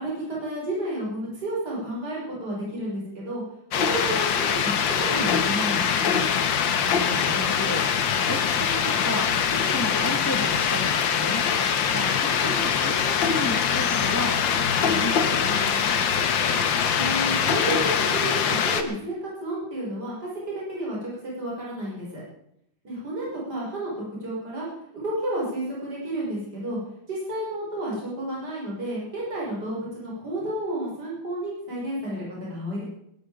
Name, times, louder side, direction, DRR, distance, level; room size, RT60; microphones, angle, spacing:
voice 1, 0.0-3.4 3.7-6.2 16.9-22.2 22.8-24.7 24.9-26.8 27.1-32.8, right 1 dB, 55° right, -5 dB, 6.9 m, -31 dB
sound 1, 3.7-18.8, left 7 dB, 75° left, 1.9 m, -23 dB
voice 2, 6.8-16.1, left 1 dB, 10° left, 5 dB, 1.7 m, -34 dB
18.0 x 12.0 x 5.2 m, 0.74 s
omnidirectional pair, 2.1 m